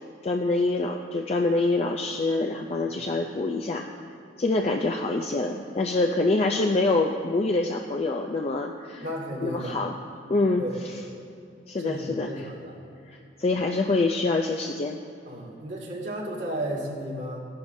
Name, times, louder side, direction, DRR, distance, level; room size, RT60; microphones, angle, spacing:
voice 1, 0.0-3.9 4.4-9.1 9.4-10.0 10.3-10.7 11.7-12.5 13.1-15.0, left 2 dB, 35° left, 2 dB, 0.4 m, -26 dB
voice 2, 9.0-9.9 10.6-10.8 11.8-12.8 15.3-17.4, right 1 dB, 90° right, -5 dB, 2.2 m, -33 dB
15.5 x 11.0 x 2.7 m, 2.6 s
head